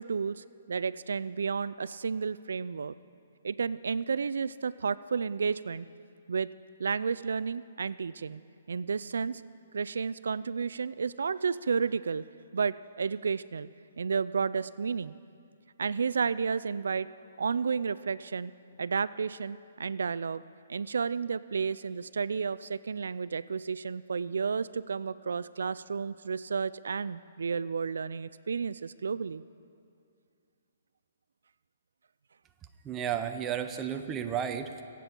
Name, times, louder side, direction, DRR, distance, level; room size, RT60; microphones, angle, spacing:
voice 1, 0.0-2.9 3.4-5.9 6.3-6.5 6.8-8.4 8.7-9.4 9.7-12.2 12.5-13.7 14.0-15.1 15.8-17.1 17.4-18.5 18.8-20.4 20.7-29.4, right 5 dB, 85° right, 17 dB, 0.3 m, -32 dB
voice 2, 32.9-34.8, right 8 dB, 15° right, 6 dB, 0.6 m, -33 dB
22.5 x 8.3 x 4.4 m, 2.4 s
hypercardioid pair, 165°, 0 cm